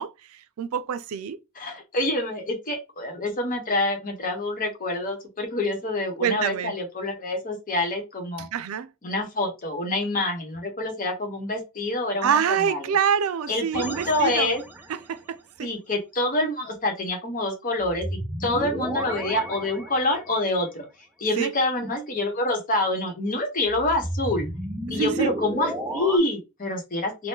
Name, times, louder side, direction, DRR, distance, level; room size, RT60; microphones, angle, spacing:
voice 1, 0.0-1.4 6.2-6.7 8.4-8.9 12.2-14.5 14.9-15.7 21.4-21.5 25.0-25.3, right 8 dB, 90° right, 0.4 m, -26 dB
voice 2, 1.5-8.5 9.0-12.9 13.5-14.6 15.6-20.9 21.2-24.5 24.9-27.3, left 2 dB, 40° left, 1.0 m, -27 dB
sound 1, 13.7-15.1 17.8-20.5 23.7-26.2, right 1 dB, 10° right, 0.4 m, -33 dB
2.8 x 2.1 x 3.5 m
head